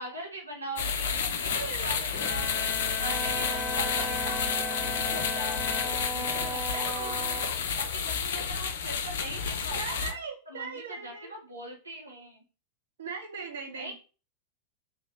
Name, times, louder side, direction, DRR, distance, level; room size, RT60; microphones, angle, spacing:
voice 1, 0.0-2.7 3.0-5.8 6.1-10.1 10.5-12.4 13.7-13.9, right 1 dB, 80° right, 0 dB, 1.2 m, -41 dB
sound 1, 0.8-10.1, left 6 dB, 60° left, 0.6 m, -30 dB
voice 2, 1.4-2.1 6.8-7.5 9.7-11.3 13.0-13.9, right 5 dB, 65° right, 4 dB, 0.8 m, -39 dB
Bowed string instrument, 2.1-6.6, left 7 dB, 15° left, 0.8 m, -38 dB
Wind instrument woodwind instrument, 3.0-7.5, right 4 dB, 15° right, 0.6 m, -38 dB
3.4 x 3.1 x 4.2 m, 0.34 s
figure-of-eight pair, 90°, 0 cm